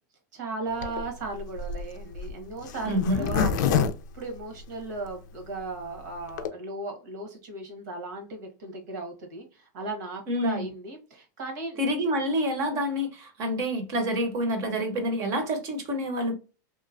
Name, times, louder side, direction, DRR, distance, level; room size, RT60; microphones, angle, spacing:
voice 1, 0.3-3.9 4.1-11.9, right 2 dB, 75° right, 1.3 m, -36 dB
Zipper (clothing), 0.8-5.1 5.6-5.7 5.8-5.9 6.2-6.5, left 6 dB, 75° left, 0.4 m, -28 dB
voice 2, 2.8-3.3 10.3-10.7 11.8-16.3, equal, 30° right, 0.7 m, -27 dB
2.9 x 2.1 x 2.5 m
supercardioid pair, 165°, 10 cm